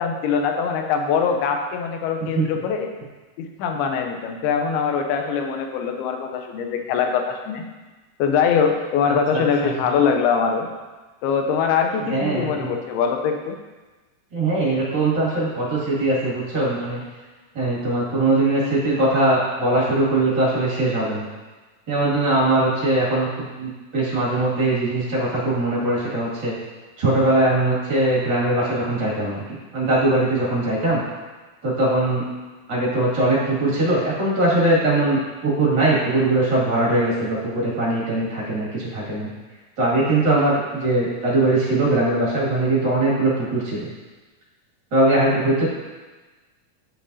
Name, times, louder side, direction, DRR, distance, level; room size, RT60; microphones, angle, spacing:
voice 1, 0.0-2.9 3.4-7.6 8.2-10.7 11.2-13.6, left 6 dB, 80° left, 4 dB, 2.6 m, -22 dB
voice 2, 9.0-9.7 12.0-12.7 14.3-17.0 17.5-21.3 21.9-26.5 27.0-31.0 31.6-32.2 32.7-39.3 39.8-43.9 44.9-45.7, right 2 dB, 35° right, -6 dB, 2.1 m, -21 dB
11.0 x 5.9 x 2.7 m, 1.3 s
omnidirectional pair, 4.6 m